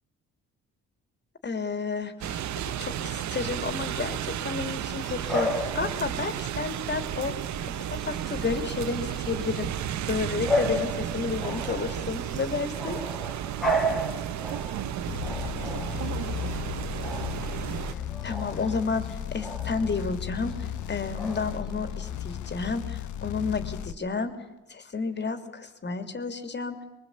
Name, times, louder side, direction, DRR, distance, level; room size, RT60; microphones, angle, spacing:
voice 1, 1.4-2.5 2.8-7.3 7.6-7.7 8.0-9.7 10.1-13.0 18.2-19.0 19.3-24.3 24.7-26.8, left 4 dB, 35° left, 8 dB, 3.0 m, -31 dB
sound 1, 2.2-17.9, right 11 dB, 70° right, 0.9 m, -33 dB
Bark / Bird vocalization bird call bird song, 5.2-22.2, equal, ahead, 3.2 m, -35 dB
voice 2, 14.5-16.6, right 10 dB, 85° right, 11 dB, 1.6 m, -40 dB
sound 2, 15.1-23.9, left 10 dB, 75° left, 1.2 m, -35 dB
23.5 x 22.0 x 8.6 m, 1.0 s
cardioid pair, 90°, 30 cm